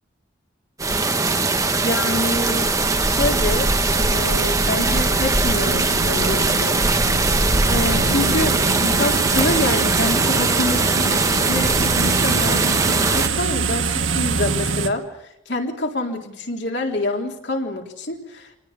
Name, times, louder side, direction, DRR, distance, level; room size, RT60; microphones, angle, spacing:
sound 1, 0.8-13.3, right 3 dB, 15° right, 1.2 m, -20 dB
voice 1, 1.8-6.8 7.7-15.1 15.5-18.6, left 2 dB, 60° left, 1 dB, 3.7 m, -26 dB
sound 2, 4.2-14.9, right 4 dB, 80° right, 1.9 m, -25 dB
27.0 x 19.0 x 7.2 m, 0.83 s
head